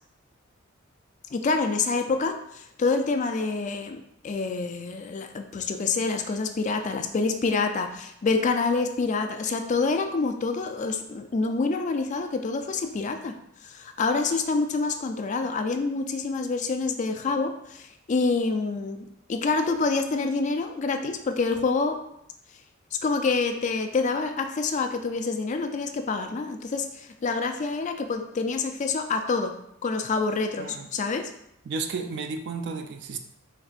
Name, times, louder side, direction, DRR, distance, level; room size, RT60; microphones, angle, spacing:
voice 1, 1.3-13.3 13.6-22.0 23.0-29.5 29.8-31.3, left 4 dB, 35° left, 6 dB, 0.4 m, -27 dB
voice 2, 30.6-30.9 31.7-33.2, right 4 dB, 55° right, 6 dB, 0.4 m, -33 dB
4.6 x 3.5 x 2.4 m, 0.75 s
head